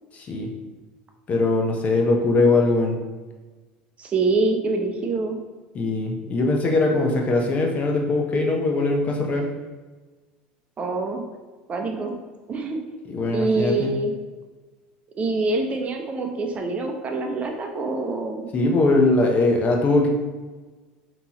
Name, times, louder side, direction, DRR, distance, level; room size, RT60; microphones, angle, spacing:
voice 1, 0.1-0.5 1.3-3.0 5.7-9.5 13.1-13.9 18.5-20.1, left 2 dB, 40° left, 1 dB, 0.9 m, -21 dB
voice 2, 4.0-5.4 10.8-11.2 11.7-12.1 12.5-12.8 13.3-14.2 15.2-18.5, right 3 dB, 35° right, 3 dB, 0.7 m, -25 dB
5.2 x 3.0 x 3.0 m, 1.3 s
supercardioid pair, 95°, 4 cm